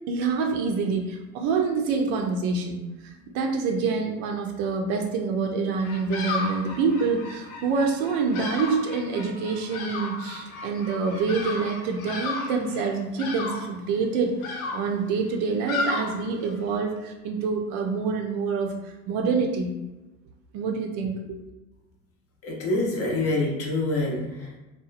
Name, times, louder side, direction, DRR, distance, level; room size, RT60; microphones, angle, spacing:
voice 1, 0.1-19.7 20.5-21.4, right 4 dB, 55° right, 2 dB, 0.5 m, -26 dB
Bird vocalization bird call bird song, 5.8-16.8, left 3 dB, 70° left, 0.7 m, -34 dB
voice 2, 22.4-24.6, left 2 dB, 35° left, 0 dB, 0.6 m, -26 dB
2.8 x 2.2 x 2.4 m, 1.1 s
hypercardioid pair, 80°, 43 cm